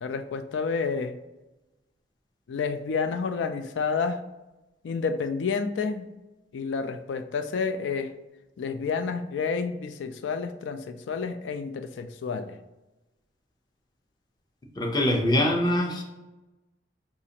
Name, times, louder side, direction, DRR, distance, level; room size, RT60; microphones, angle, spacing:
voice 1, 0.0-1.2 2.5-4.2 4.8-6.1 6.5-8.1 8.6-12.6, left 5 dB, 85° left, 9 dB, 0.3 m, -29 dB
voice 2, 14.8-16.0, left 1 dB, 25° left, 0 dB, 0.6 m, -23 dB
4.0 x 2.4 x 2.8 m, 1.0 s
head